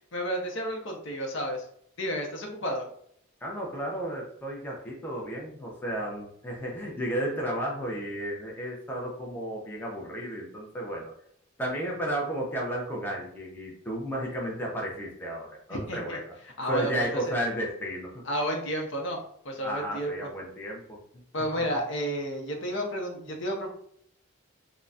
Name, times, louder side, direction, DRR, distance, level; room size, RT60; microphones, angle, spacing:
voice 1, 0.0-1.6 2.0-2.9 15.7-16.2 16.6-16.9 17.3-17.4 18.3-20.3 21.3-23.7, equal, 65° left, 1 dB, 0.6 m, -31 dB
voice 2, 3.4-11.1 11.6-18.2 19.6-21.2 21.6-21.7, equal, 10° left, -2 dB, 0.6 m, -33 dB
3.8 x 2.1 x 2.3 m, 0.67 s
head